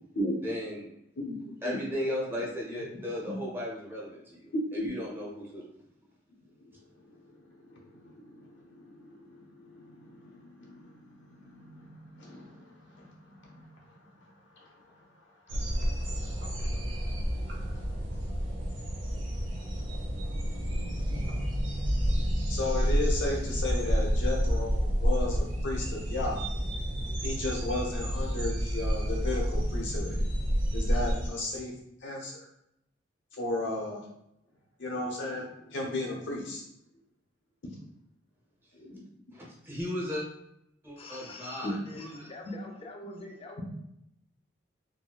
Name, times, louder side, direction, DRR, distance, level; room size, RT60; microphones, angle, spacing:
voice 1, 0.4-0.9 1.6-5.7 39.3-40.2 40.8-42.3, left 1 dB, 10° right, -4 dB, 0.9 m, -36 dB
voice 2, 4.5-4.9 7.3-7.4 7.7-13.7 14.6-14.7 15.5-16.1 21.1-21.2 22.5-26.4 27.2-30.2 30.7-31.7 32.0-32.4 33.3-34.0 34.8-36.6 38.7-39.0, left 2 dB, 80° left, -2 dB, 1.0 m, -35 dB
sound 1, 15.5-31.3, equal, 85° right, 0.7 m, -29 dB
voice 3, 41.0-43.6, left 2 dB, 30° left, 1 dB, 0.4 m, -45 dB
4.1 x 2.2 x 2.3 m, 0.79 s
head